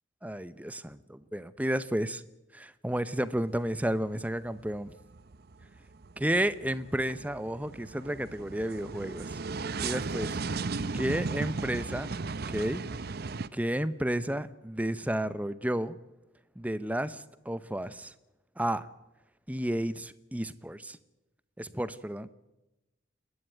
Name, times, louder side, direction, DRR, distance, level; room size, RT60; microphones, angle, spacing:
voice 1, 0.2-2.2 2.5-4.9 6.2-9.4 9.8-10.4 10.9-12.8 13.5-16.0 16.6-18.1 18.6-18.8 19.5-21.0 21.6-22.3, right 1 dB, 5° right, 15 dB, 0.7 m, -32 dB
sound 1, 3.5-4.0 4.3-13.5, right 4 dB, 50° right, 0.7 m, -36 dB
29.0 x 11.5 x 9.3 m, 0.99 s
head